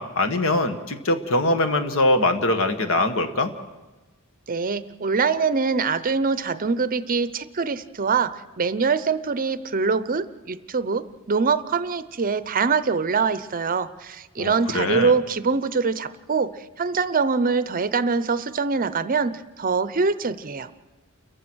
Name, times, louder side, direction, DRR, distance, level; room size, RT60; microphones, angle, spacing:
voice 1, 0.0-3.5 14.4-15.1, left 2 dB, 65° left, 8 dB, 1.6 m, -22 dB
voice 2, 4.5-20.7, right 4 dB, 40° right, 14 dB, 0.7 m, -24 dB
29.5 x 15.0 x 6.3 m, 1.1 s
head